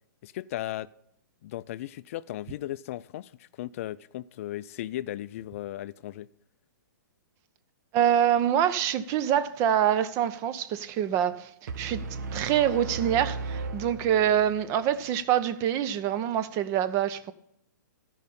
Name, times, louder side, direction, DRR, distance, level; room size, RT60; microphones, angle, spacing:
voice 1, 0.2-0.9 1.4-6.3, left 14 dB, 45° left, 0.3 m, -36 dB
voice 2, 7.9-12.0 12.3-17.3, right 10 dB, 25° right, 0.6 m, -25 dB
sound 1, 11.7-14.7, right 4 dB, 60° right, 0.8 m, -36 dB
13.0 x 5.4 x 5.3 m
hypercardioid pair, 145°, 11 cm